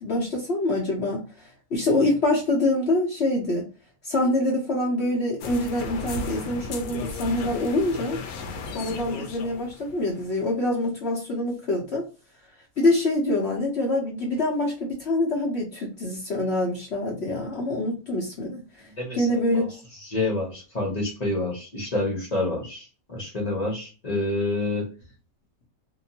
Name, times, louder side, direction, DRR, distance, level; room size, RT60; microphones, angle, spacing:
voice 1, 0.0-1.3 1.7-3.7 4.0-8.2 8.7-12.1 12.8-18.6 19.1-19.7, left 1 dB, 55° left, 1.0 m, -25 dB
sound 1, 5.4-10.5, left 3 dB, 85° left, 1.1 m, -35 dB
voice 2, 19.0-19.7 20.1-24.9, left 2 dB, 30° left, 0.9 m, -28 dB
2.8 x 2.1 x 2.7 m
omnidirectional pair, 1.5 m